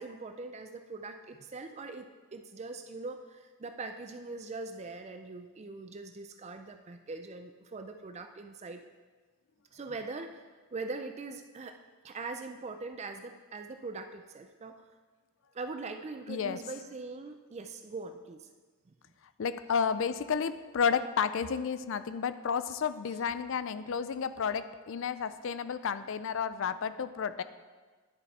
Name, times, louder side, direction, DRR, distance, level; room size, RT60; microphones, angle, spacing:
voice 1, 0.0-8.8 9.7-11.8 12.0-14.8 15.5-18.5, right 3 dB, 30° right, 7 dB, 0.4 m, -42 dB
voice 2, 16.3-16.6 19.4-27.4, left 6 dB, 60° left, 13 dB, 0.4 m, -31 dB
11.0 x 6.8 x 4.2 m, 1.4 s
head